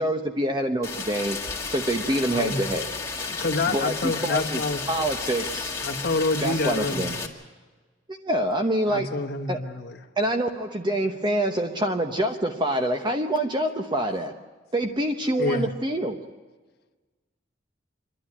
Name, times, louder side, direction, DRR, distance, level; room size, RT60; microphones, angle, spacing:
voice 1, 0.0-1.4 1.7-2.9 3.7-4.6 4.9-5.7 6.4-7.1 8.1-9.1 9.5-9.6 10.2-14.3 14.7-16.2, right 1 dB, 25° right, 5 dB, 0.9 m, -26 dB
Rain, 0.8-7.3, left 4 dB, 15° left, 1.9 m, -32 dB
voice 2, 2.3-2.7 3.3-4.8 5.8-7.3 8.9-10.0 15.4-15.7, left 3 dB, 60° left, 4 dB, 1.3 m, -27 dB
voice 3, 11.0-12.0 15.2-15.7, right 1 dB, 45° right, -1 dB, 6.8 m, -50 dB
27.0 x 11.5 x 9.8 m, 1.3 s
head